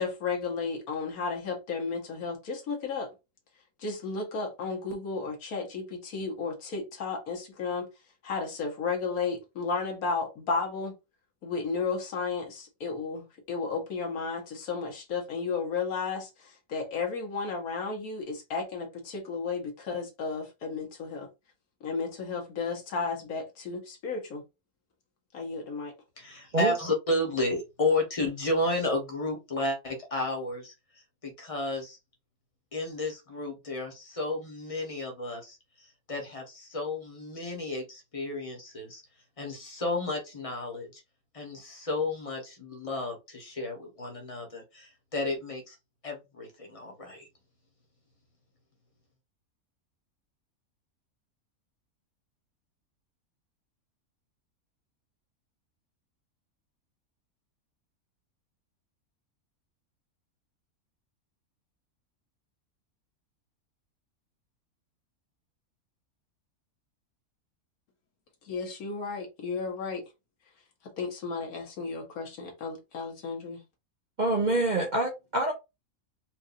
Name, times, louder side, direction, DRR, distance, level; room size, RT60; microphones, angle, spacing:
voice 1, 0.0-3.1 3.8-7.9 8.2-10.9 11.4-21.3 21.8-24.4 25.3-25.9 68.5-70.0 71.0-73.6, left 4 dB, 75° left, 1.5 m, -33 dB
voice 2, 26.2-30.7 31.2-32.0 32.7-39.0 39.4-41.0 41.3-45.8 46.0-47.3, left 2 dB, 25° left, 1.1 m, -32 dB
voice 3, 74.2-75.5, right 2 dB, 40° right, 0.7 m, -26 dB
4.6 x 2.5 x 2.6 m
omnidirectional pair, 1.5 m